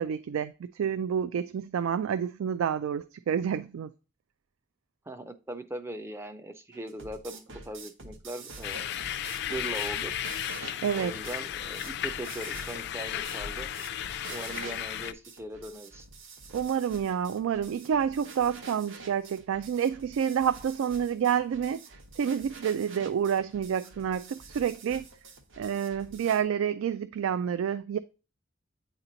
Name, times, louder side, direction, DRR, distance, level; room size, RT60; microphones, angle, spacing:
voice 1, 0.0-3.9 10.8-11.1 16.5-21.8 22.2-25.1 25.6-28.0, right 8 dB, 90° right, 0.3 m, -29 dB
voice 2, 5.1-9.0 9.5-10.2 11.0-13.7 14.3-16.1, right 1 dB, 15° right, 0.4 m, -40 dB
sound 1, 6.7-26.4, right 3 dB, 65° right, 0.9 m, -47 dB
sound 2, 8.6-15.1, left 10 dB, 55° left, 0.3 m, -34 dB
8.7 x 2.9 x 3.8 m
head